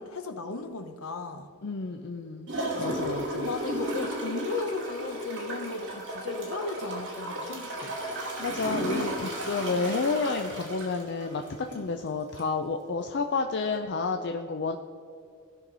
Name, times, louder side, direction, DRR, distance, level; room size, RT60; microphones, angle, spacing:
voice 1, 0.0-1.5 2.7-3.0 3.3-7.9, left 3 dB, 65° left, 8 dB, 0.9 m, -36 dB
voice 2, 1.6-2.5 2.8-3.5 8.4-14.8, left 4 dB, 50° left, 5 dB, 0.5 m, -30 dB
Gurgling / Toilet flush, 2.5-11.9 12.4-12.5, right 1 dB, 55° right, 2.4 m, -34 dB
16.5 x 5.8 x 4.0 m, 2.3 s
head